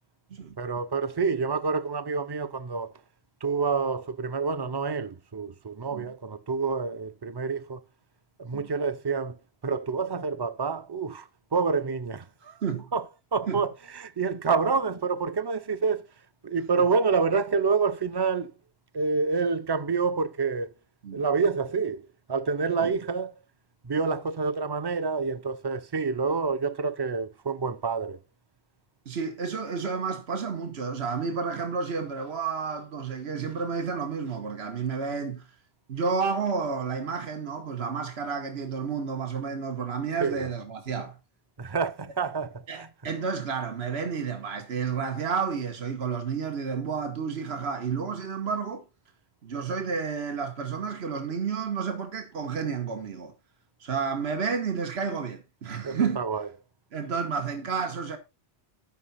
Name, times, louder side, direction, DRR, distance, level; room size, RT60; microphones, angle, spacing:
voice 1, 0.6-2.9 3.4-7.8 8.4-9.4 9.6-12.5 12.9-13.0 13.3-16.0 16.4-18.5 18.9-20.7 21.1-23.3 23.8-28.2 40.2-40.5 41.6-42.9 55.8-56.5, right 5 dB, 25° right, 0.6 m, -28 dB
voice 2, 29.0-35.4 35.9-41.2 42.7-48.8 49.4-53.3 53.8-56.2 56.9-58.2, right 5 dB, 80° right, 1.6 m, -31 dB
13.0 x 5.8 x 4.1 m
omnidirectional pair, 1.1 m